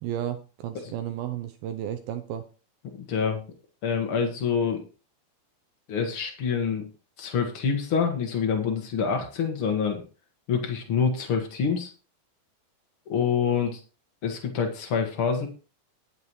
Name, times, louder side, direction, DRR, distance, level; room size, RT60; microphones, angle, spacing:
voice 1, 0.0-2.4, right 11 dB, 75° right, 9 dB, 2.3 m, -33 dB
voice 2, 3.0-3.4 3.8-4.8 5.9-6.8 7.2-10.0 10.5-11.9 13.1-13.8 14.2-15.5, left 6 dB, 80° left, 3 dB, 1.2 m, -26 dB
19.5 x 7.2 x 3.1 m, 0.34 s
omnidirectional pair, 4.9 m